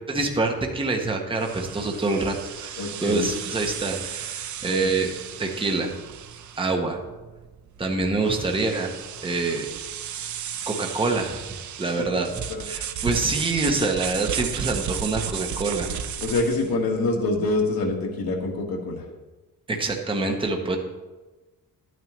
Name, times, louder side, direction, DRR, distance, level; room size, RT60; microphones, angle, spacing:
voice 1, 0.1-2.7 3.0-5.1 5.4-5.9 6.6-7.0 7.8-8.9 9.2-9.7 10.7-11.4 11.8-12.3 12.7-15.9 19.7-20.8, right 3 dB, 15° right, 3 dB, 0.8 m, -26 dB
sound 1, 1.4-16.7, right 8 dB, 55° right, 0.5 m, -34 dB
voice 2, 2.8-3.2 4.7-4.9 12.0-12.1 12.5-12.6 16.2-19.0, left 2 dB, 75° left, 1 dB, 1.6 m, -25 dB
11.0 x 9.1 x 3.0 m, 1.2 s
wide cardioid pair, 180°, 36 cm